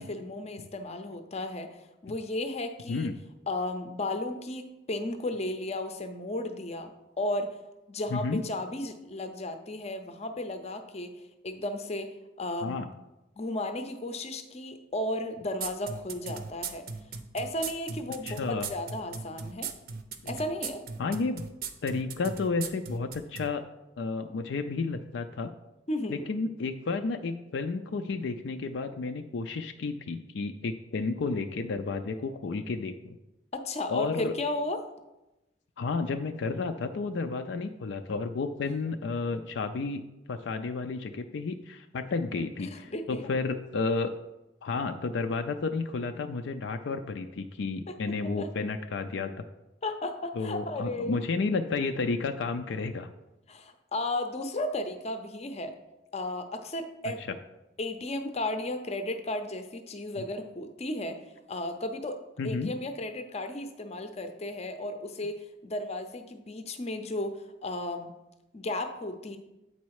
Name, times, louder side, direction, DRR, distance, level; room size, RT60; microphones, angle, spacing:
voice 1, 0.0-1.7 2.0-3.1 3.5-6.9 7.2-7.5 7.9-11.1 11.4-12.1 12.4-12.8 13.4-16.8 17.3-19.7 20.3-20.8 25.9-26.3 33.5-34.8 42.6-43.2 47.9-48.0 48.4-48.5 49.8-51.2 53.5-55.7 56.1-57.2 57.8-61.2 61.5-62.2 62.4-65.4 65.6-68.1 68.5-69.4, left 1 dB, 35° left, 7 dB, 0.6 m, -34 dB
voice 2, 8.1-8.4 12.6-12.9 18.2-18.7 21.0-21.4 21.8-23.6 24.0-25.5 26.1-33.1 33.9-34.3 35.8-40.0 40.3-44.1 44.6-49.3 50.4-53.1 62.4-62.7, left 4 dB, 75° left, 7 dB, 0.4 m, -31 dB
sound 1, 15.6-23.5, right 5 dB, 55° right, 0.6 m, -37 dB
8.0 x 4.2 x 4.7 m, 0.96 s
head